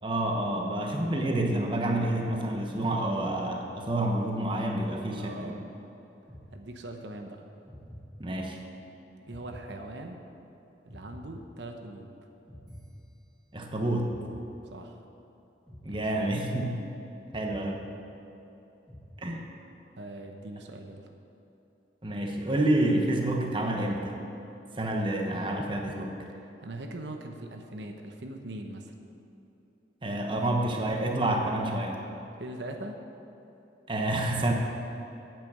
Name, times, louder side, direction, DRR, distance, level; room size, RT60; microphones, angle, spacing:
voice 1, 0.0-5.5 8.2-8.6 13.5-14.2 15.8-16.8 17.3-17.8 19.2-19.5 22.0-24.2 24.8-26.2 30.0-32.0 33.9-34.5, right 1 dB, 30° right, 1 dB, 1.1 m, -28 dB
voice 2, 5.2-5.6 6.5-7.5 9.2-10.2 10.8-12.1 14.7-15.0 15.9-16.4 20.0-21.1 26.4-28.9 32.4-33.0, right 1 dB, 90° right, 4 dB, 0.9 m, -41 dB
sound 1, 6.3-7.1 7.7-8.7 9.3-10.4 10.9-12.0 12.5-13.6 14.1-15.1 15.7-16.8 17.3-18.4 18.9-19.7, equal, 5° left, 2.0 m, -49 dB
9.1 x 9.0 x 6.7 m, 2.9 s
head